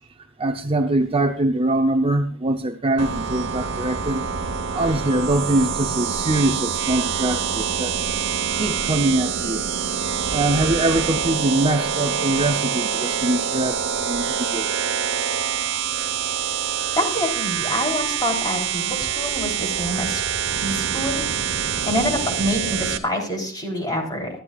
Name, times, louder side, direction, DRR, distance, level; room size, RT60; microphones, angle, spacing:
voice 1, 0.4-4.2 4.7-8.0 8.5-9.6 10.3-14.7, right 2 dB, 30° right, 6 dB, 0.8 m, -23 dB
sound 1, 3.0-23.0, right 7 dB, 65° right, 1.2 m, -25 dB
voice 2, 17.0-20.2 20.6-21.2 21.9-24.3, equal, 20° left, 1 dB, 3.5 m, -26 dB
24.0 x 11.5 x 2.4 m, 0.41 s
head